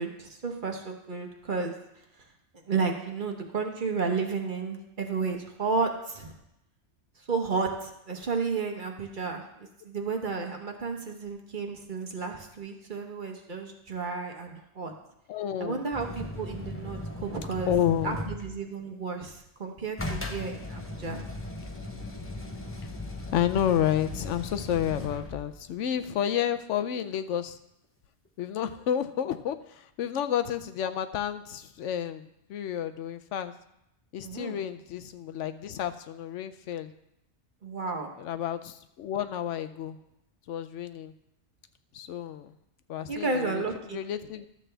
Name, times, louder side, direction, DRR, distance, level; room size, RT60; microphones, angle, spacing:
voice 1, 0.0-1.7 2.7-6.3 7.2-14.9 15.6-17.7 18.0-21.2 34.2-34.6 37.6-38.1 43.1-44.0, right 4 dB, 45° right, 3 dB, 1.1 m, -32 dB
voice 2, 15.3-15.8 17.7-18.3 23.3-27.6 28.4-33.5 34.1-36.9 38.2-40.0 40.5-41.1 41.9-42.5 42.9-43.6 43.9-44.5, left 10 dB, 85° left, 10 dB, 1.0 m, -30 dB
sound 1, 15.9-18.6 20.0-25.6 28.4-28.5, left 2 dB, 15° left, 0.7 m, -38 dB
12.5 x 7.5 x 3.4 m, 0.81 s
omnidirectional pair, 1.2 m